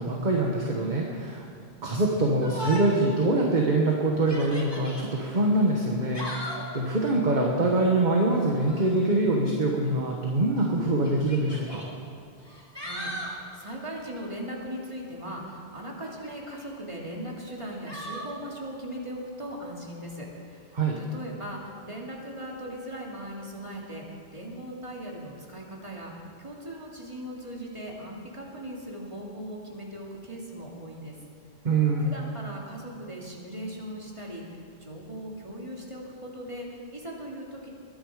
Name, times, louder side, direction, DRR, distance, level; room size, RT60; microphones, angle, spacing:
voice 1, 0.0-1.4 1.8-11.8 20.7-21.0 31.6-32.1, right 2 dB, 45° right, -1 dB, 1.4 m, -24 dB
Yell, 2.4-3.1 3.5-3.6 4.2-5.1 5.9-6.7 8.5-8.9 10.1-10.2 11.0-11.9 12.4-13.4 16.0-16.7 17.9-18.3, equal, 25° left, 2.4 m, -38 dB
voice 2, 12.8-24.0 24.3-26.1 26.4-31.2 32.0-37.7, equal, 30° right, -2 dB, 2.5 m, -39 dB
21.5 x 10.5 x 5.0 m, 2.4 s
omnidirectional pair, 1.1 m